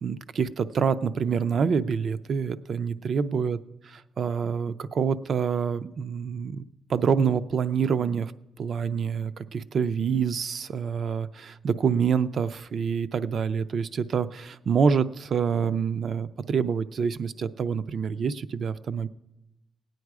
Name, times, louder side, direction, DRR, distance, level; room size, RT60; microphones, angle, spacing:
voice 1, 0.0-3.6 4.2-8.3 8.6-19.1, right 6 dB, 55° right, 13 dB, 0.4 m, -26 dB
17.5 x 9.2 x 4.8 m, 0.96 s
wide cardioid pair, 170°, 0 cm